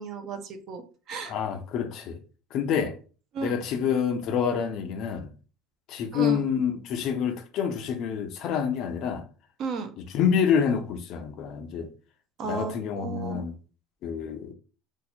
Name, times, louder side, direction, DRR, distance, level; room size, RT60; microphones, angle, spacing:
voice 1, 0.0-1.3 3.3-3.6 6.1-6.4 9.6-9.9 12.4-13.5, right 5 dB, 35° right, 0.5 m, -34 dB
voice 2, 1.2-2.2 2.5-3.0 3.4-5.3 5.9-9.3 10.0-11.9 12.4-13.5 14.0-14.5, left 7 dB, 40° left, 0.4 m, -27 dB
2.7 x 2.2 x 4.1 m
cardioid pair, 175°, 0 cm